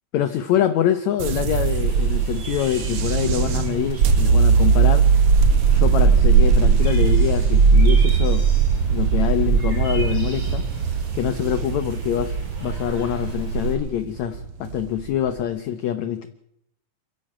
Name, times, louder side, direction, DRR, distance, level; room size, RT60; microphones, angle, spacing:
voice 1, 0.1-5.3 5.7-8.5 8.9-16.3, left 10 dB, 70° left, 10 dB, 1.9 m, -25 dB
sound 1, 1.2-15.4, right 6 dB, 65° right, 1.4 m, -19 dB
sound 2, 1.5-13.7, right 5 dB, 90° right, 6.9 m, -27 dB
28.0 x 11.0 x 8.9 m, 0.76 s
omnidirectional pair, 4.1 m